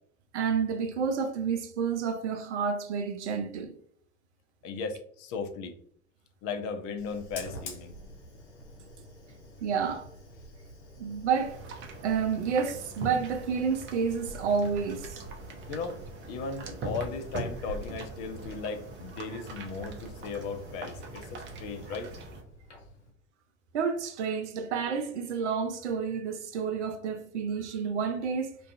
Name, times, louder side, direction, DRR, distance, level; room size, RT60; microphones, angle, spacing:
voice 1, 0.3-3.7 9.6-10.1 11.0-11.8 12.0-15.2 23.7-28.6, right 6 dB, 80° right, 0.5 m, -30 dB
voice 2, 4.6-5.7 6.4-7.9 15.7-22.1, left 4 dB, 45° left, 0.5 m, -37 dB
Fire, 7.0-23.1, equal, 80° left, 0.7 m, -48 dB
sound 1, 11.3-22.4, right 2 dB, 35° right, 0.5 m, -42 dB
2.4 x 2.2 x 2.5 m
figure-of-eight pair, 75°, 34 cm